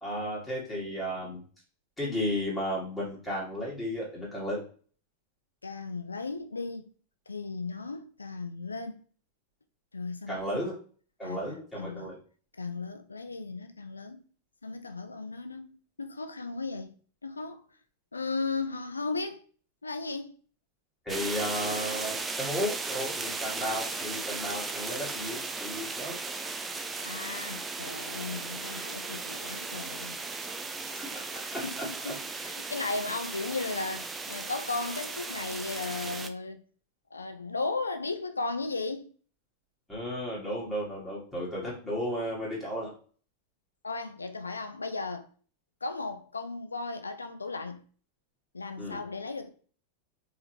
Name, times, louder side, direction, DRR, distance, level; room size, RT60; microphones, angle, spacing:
voice 1, 0.0-1.4 2.0-4.6 10.3-10.7 11.2-12.2 21.1-26.2 30.7-31.1 31.5-31.8 39.9-42.9 48.8-49.0, equal, 5° left, 1.9 m, -34 dB
voice 2, 5.6-6.9 7.3-9.0 9.9-10.6 11.2-12.1 12.6-14.2 14.6-15.7 16.0-16.9 17.2-17.6 18.1-19.4 19.8-20.3 27.0-30.2 31.6-31.8 32.0-36.6 37.1-39.1 43.8-45.3 45.8-47.8 48.5-49.5, left 3 dB, 80° left, 0.5 m, -36 dB
sound 1, 21.1-36.3, right 4 dB, 15° right, 0.4 m, -36 dB
4.7 x 3.0 x 3.3 m
figure-of-eight pair, 90°, 0 cm